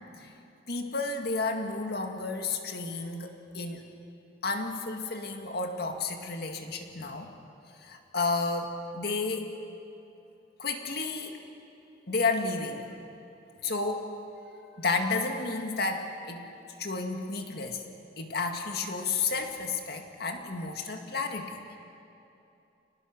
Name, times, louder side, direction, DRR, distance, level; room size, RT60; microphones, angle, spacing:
voice 1, 0.7-3.8 4.4-7.3 7.8-9.6 10.6-11.4 12.1-12.9 13.6-14.1 14.8-16.5 16.8-17.8 18.2-21.6, left 3 dB, 60° left, 4 dB, 2.0 m, -31 dB
29.0 x 19.0 x 6.2 m, 2.8 s
head